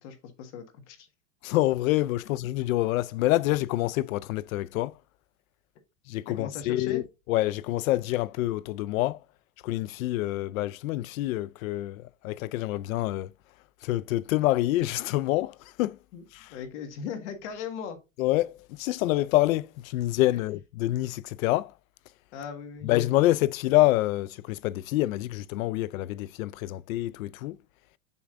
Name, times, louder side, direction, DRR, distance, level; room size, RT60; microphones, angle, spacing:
voice 1, 0.0-1.1 6.3-7.0 16.1-16.2 16.5-18.0 22.3-22.9, left 7 dB, 60° left, 1.6 m, -38 dB
voice 2, 1.4-5.0 6.1-7.0 7.3-9.2 9.6-13.3 13.8-16.0 16.3-16.5 18.2-21.7 22.8-27.6, left 16 dB, 90° left, 0.5 m, -27 dB
6.9 x 6.2 x 2.5 m
supercardioid pair, 175°, 39 cm